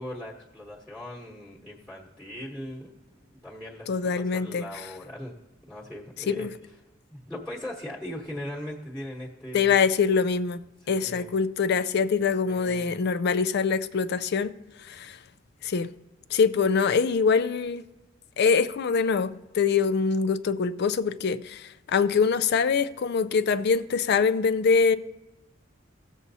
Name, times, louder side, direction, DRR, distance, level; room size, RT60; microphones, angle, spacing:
voice 1, 0.0-5.4 5.6-6.7 7.1-9.7 10.8-11.3 12.4-13.0, left 1 dB, ahead, 1.1 m, -39 dB
voice 2, 3.9-4.6 6.3-6.5 9.5-14.5 14.9-15.2 15.6-15.9 16.3-17.8 18.4-25.0, left 5 dB, 55° left, 0.4 m, -24 dB
16.0 x 7.1 x 2.7 m
head